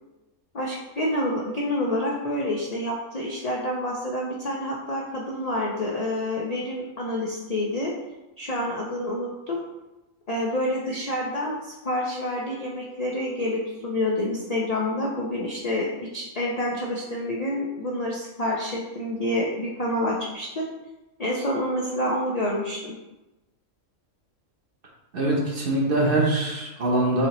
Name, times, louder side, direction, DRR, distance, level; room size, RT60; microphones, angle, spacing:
voice 1, 0.5-7.9 8.4-9.6 10.3-20.7 21.2-22.9, left 1 dB, 60° left, -3 dB, 0.4 m, -28 dB
voice 2, 25.1-27.3, right 2 dB, 50° right, -2 dB, 0.9 m, -23 dB
6.3 x 2.8 x 3.0 m, 1.0 s
omnidirectional pair, 1.4 m